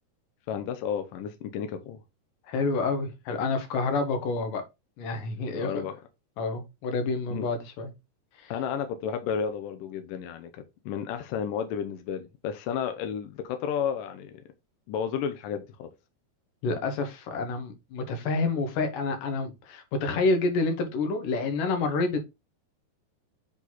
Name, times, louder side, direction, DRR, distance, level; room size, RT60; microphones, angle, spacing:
voice 1, 0.5-2.0 5.6-6.0 7.3-7.5 8.5-14.3 14.9-15.9, left 7 dB, 80° left, 2.0 m, -32 dB
voice 2, 2.5-4.6 5.0-5.9 6.4-7.9 8.4-8.5 16.6-22.2, left 3 dB, 65° left, 2.4 m, -28 dB
7.4 x 4.1 x 4.0 m
omnidirectional pair, 4.7 m